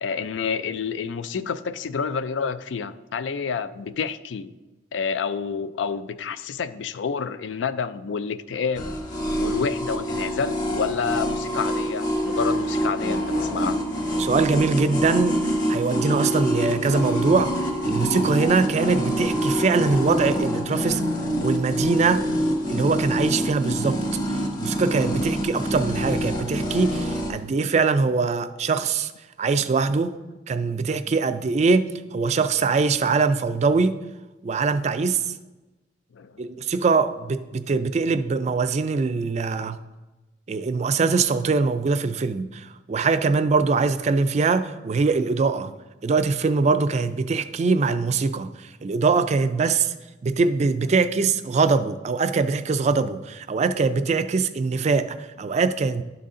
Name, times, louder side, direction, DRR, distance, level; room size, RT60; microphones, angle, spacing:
voice 1, 0.0-4.5 4.9-8.9 9.4-13.8 36.1-36.5 40.7-40.9 48.3-48.4, left 6 dB, 80° left, 0.4 m, -29 dB
sound 1, 8.7-27.3, equal, 45° left, 1.2 m, -26 dB
voice 2, 14.2-15.4 15.7-21.0 21.4-22.3 22.7-24.0 24.3-29.1 29.4-30.1 30.5-34.0 34.4-35.2 36.4-39.8 40.5-45.7 46.0-49.9 50.2-56.0, right 4 dB, 35° right, 0.3 m, -22 dB
11.5 x 4.0 x 3.7 m
head